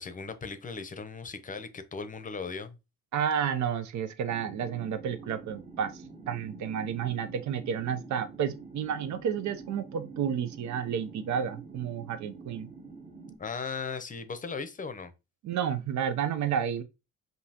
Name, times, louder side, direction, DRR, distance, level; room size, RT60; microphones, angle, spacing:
voice 1, 0.0-2.8 13.4-15.1, left 5 dB, 25° left, 0.7 m, -37 dB
voice 2, 3.1-12.7 15.4-16.8, right 8 dB, 70° right, 0.7 m, -31 dB
sound 1, 4.3-13.4, right 4 dB, 20° right, 0.9 m, -47 dB
5.3 x 2.7 x 2.8 m
cardioid pair, 90°, 30 cm